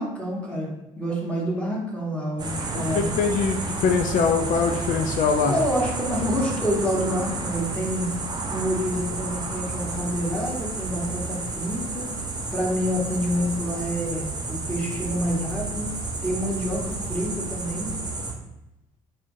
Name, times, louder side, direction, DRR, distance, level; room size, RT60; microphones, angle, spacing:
voice 1, 0.0-3.1 5.5-8.1 8.5-12.2 12.5-15.9 16.2-17.9, equal, 5° left, -4 dB, 1.1 m, -28 dB
sound 1, 2.4-18.3, right 3 dB, 25° right, 0.6 m, -31 dB
voice 2, 2.7-5.5, left 5 dB, 45° left, 5 dB, 0.4 m, -23 dB
3.4 x 2.5 x 2.6 m, 0.90 s
figure-of-eight pair, 55°, 18 cm